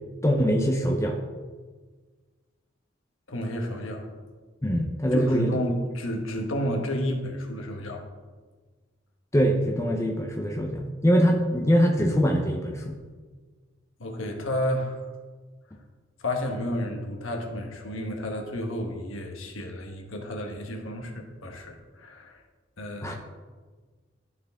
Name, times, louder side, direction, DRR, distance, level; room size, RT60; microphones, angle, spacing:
voice 1, 0.2-1.2 4.6-5.5 9.3-12.9 23.0-23.2, equal, 15° left, 1 dB, 0.6 m, -23 dB
voice 2, 3.3-4.1 5.1-8.0 14.0-15.0 16.2-22.4 22.8-23.2, left 1 dB, 80° left, 2 dB, 1.2 m, -31 dB
12.0 x 4.7 x 3.5 m, 1.4 s
head